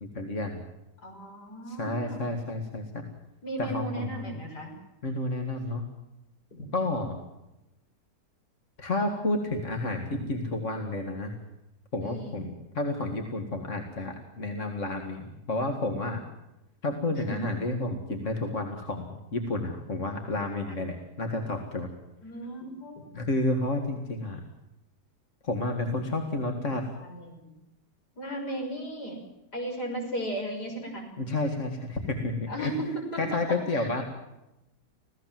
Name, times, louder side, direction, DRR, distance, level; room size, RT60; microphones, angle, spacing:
voice 1, 0.0-0.6 1.7-3.1 3.6-4.3 5.0-5.9 6.7-7.2 8.8-11.3 11.9-16.2 16.8-21.9 23.1-24.4 25.4-26.8 31.2-32.7 33.2-34.0, left 2 dB, 45° left, 4 dB, 2.4 m, -31 dB
voice 2, 1.0-2.2 3.4-4.7 6.5-6.6 12.0-12.5 17.3-17.4 20.7-20.8 22.2-23.2 27.0-27.6 28.2-29.2 29.5-31.1 32.5-33.4 33.7-34.0, right 1 dB, 65° left, 1 dB, 6.7 m, -36 dB
26.5 x 17.0 x 7.7 m, 0.91 s
omnidirectional pair, 1.8 m